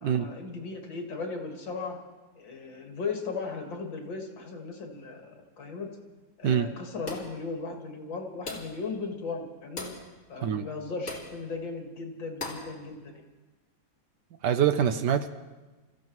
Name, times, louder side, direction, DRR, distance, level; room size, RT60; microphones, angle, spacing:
voice 1, 0.0-2.0 2.4-5.3 5.6-5.9 6.4-9.9 10.3-13.2, left 4 dB, 70° left, 2 dB, 2.6 m, -37 dB
sound 1, 7.1-7.4 8.5-8.8 9.8-10.1 11.1-11.3 12.4-12.7, left 3 dB, 40° left, 2.7 m, -38 dB
voice 2, 14.4-15.3, right 8 dB, 65° right, 9 dB, 1.2 m, -24 dB
29.5 x 15.0 x 3.1 m, 1.2 s
omnidirectional pair, 2.1 m